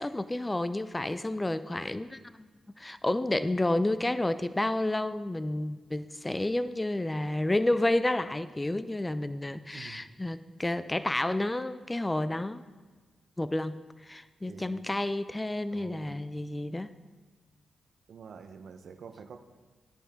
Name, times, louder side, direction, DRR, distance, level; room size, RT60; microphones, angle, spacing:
voice 1, 0.0-2.5 2.8-12.6 13.4-13.7 14.0-16.9, left 1 dB, 20° left, 13 dB, 0.6 m, -30 dB
voice 2, 9.7-10.0 14.5-14.8 15.7-16.2 18.1-19.4, right 6 dB, 70° right, 7 dB, 0.9 m, -47 dB
14.5 x 10.0 x 3.7 m, 1.4 s
supercardioid pair, 50°, 0 cm